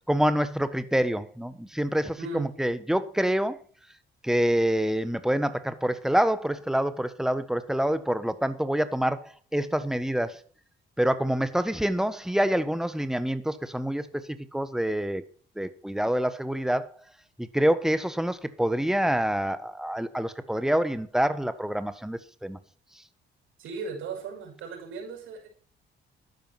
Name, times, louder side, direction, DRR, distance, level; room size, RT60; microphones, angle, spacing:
voice 1, 0.1-3.6 4.2-10.4 11.0-15.2 15.6-16.9 17.4-22.6, right 1 dB, ahead, 1.4 m, -26 dB
voice 2, 2.2-2.5 23.6-25.5, right 4 dB, 85° right, 6.4 m, -37 dB
13.0 x 10.5 x 6.0 m
cardioid pair, 90°, 20 cm